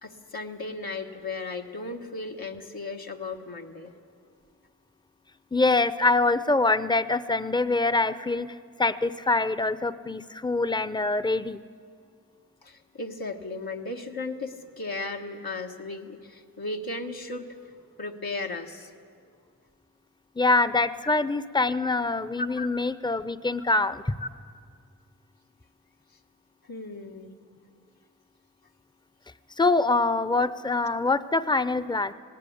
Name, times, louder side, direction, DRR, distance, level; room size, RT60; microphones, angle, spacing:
voice 1, 0.0-3.9 12.6-17.5 18.0-18.9 21.0-21.1 22.4-22.7 24.2-24.3 26.7-27.4, left 3 dB, 85° left, 2 dB, 1.4 m, -35 dB
voice 2, 5.5-11.6 20.4-24.1 29.6-32.1, left 3 dB, 10° left, 14 dB, 0.6 m, -24 dB
18.5 x 18.0 x 8.6 m, 2.2 s
wide cardioid pair, 45°, 36 cm